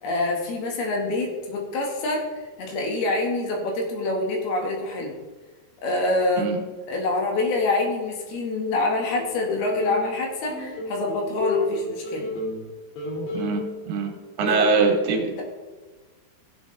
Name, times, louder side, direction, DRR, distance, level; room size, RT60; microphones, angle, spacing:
voice 1, 0.0-2.3 2.6-5.1 5.8-6.5 6.9-12.3 14.5-14.7 15.4-15.5, left 2 dB, 70° left, 0 dB, 3.7 m, -26 dB
sound 1, 9.2-10.0 10.5-12.7 13.0-13.5, left 3 dB, 85° left, 4.3 m, -30 dB
voice 2, 13.3-13.6 13.9-14.1 14.4-15.4, right 4 dB, 80° right, 2 dB, 3.5 m, -22 dB
16.5 x 7.9 x 3.4 m, 1.3 s
omnidirectional pair, 4.6 m